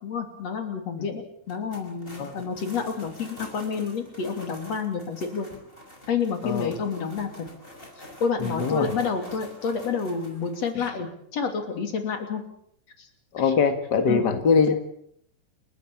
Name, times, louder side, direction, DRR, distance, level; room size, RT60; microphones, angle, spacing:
voice 1, 0.0-5.5 6.1-7.3 8.2-12.4 13.0-13.1 13.4-13.5 14.1-14.3, left 5 dB, 40° left, 6 dB, 3.6 m, -29 dB
sound 1, 1.4-10.7, left 1 dB, 10° left, 5.7 m, -46 dB
voice 2, 8.4-8.9 10.7-10.8 13.3-14.8, left 5 dB, 80° left, 8 dB, 0.9 m, -22 dB
29.0 x 13.5 x 8.7 m, 0.69 s
omnidirectional pair, 5.2 m